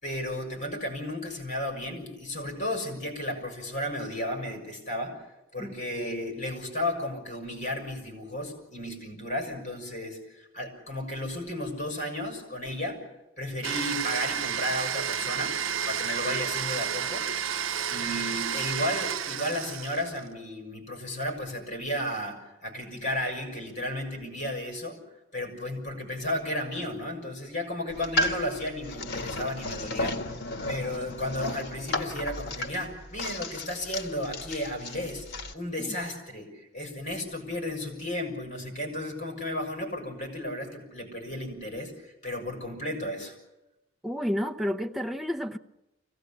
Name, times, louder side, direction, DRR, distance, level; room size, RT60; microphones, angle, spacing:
voice 1, 0.0-5.2 5.5-13.0 13.4-15.6 15.9-17.3 17.9-25.0 25.3-30.2 30.7-43.3, left 1 dB, 40° left, 6.2 m, -33 dB
Domestic sounds home sounds, 13.6-20.3, right 8 dB, 90° right, 0.7 m, -31 dB
sound 1, 27.9-35.5, left 1 dB, 55° left, 1.8 m, -34 dB
voice 2, 44.0-45.6, equal, ahead, 0.8 m, -30 dB
24.5 x 17.0 x 8.7 m
head